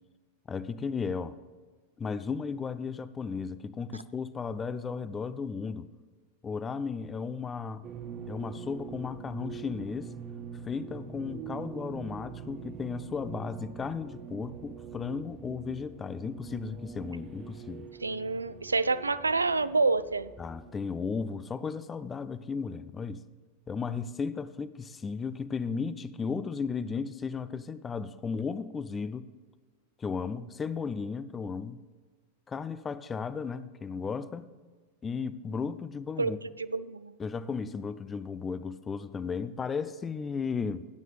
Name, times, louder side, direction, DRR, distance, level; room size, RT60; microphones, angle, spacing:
voice 1, 0.5-1.4 2.0-5.9 6.4-7.9 8.3-10.1 10.7-17.9 20.4-23.2 23.7-29.3 30.0-31.8 32.5-34.5 35.0-36.4 37.2-40.9, left 5 dB, 20° left, 15 dB, 0.5 m, -35 dB
sound 1, 7.8-21.1, right 7 dB, 30° right, 1.0 m, -44 dB
voice 2, 18.0-20.3 36.2-36.3 36.6-37.1, right 3 dB, 80° right, 15 dB, 0.4 m, -28 dB
16.0 x 9.2 x 3.3 m, 1.4 s
figure-of-eight pair, 90°, 0 cm